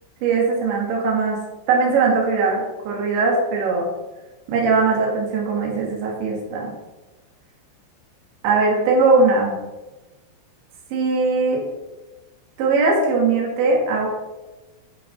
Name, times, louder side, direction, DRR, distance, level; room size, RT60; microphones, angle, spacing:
voice 1, 0.2-1.4 1.7-3.9 4.5-6.7 8.4-9.6 10.9-11.6 12.6-14.1, right 4 dB, 65° right, -2 dB, 4.3 m, -20 dB
11.0 x 6.1 x 5.4 m, 1.1 s
omnidirectional pair, 5.8 m